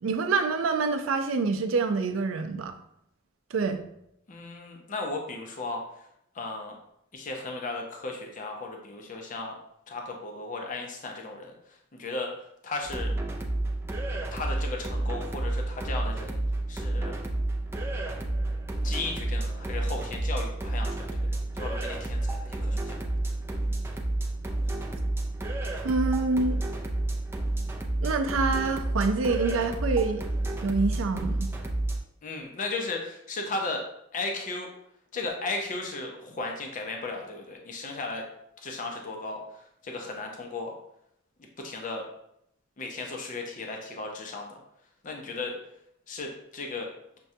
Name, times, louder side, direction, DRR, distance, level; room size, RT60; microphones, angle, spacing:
voice 1, 0.0-2.7 3.5-3.8 25.8-26.6 28.0-30.2 30.6-31.5, right 4 dB, 90° right, 7 dB, 0.4 m, -26 dB
voice 2, 4.3-5.8 6.3-6.8 7.1-9.6 9.9-12.3 12.6-13.1 14.3-16.4 16.7-17.2 18.8-23.0 32.2-33.8 34.1-34.7 35.1-38.2 38.6-40.7 41.6-42.1 42.8-44.6 45.0-45.6 46.1-46.9, left 3 dB, 40° left, 2 dB, 0.5 m, -35 dB
sound 1, 12.8-32.0, right 2 dB, 10° right, 0.3 m, -30 dB
6.0 x 2.2 x 2.7 m, 0.76 s
head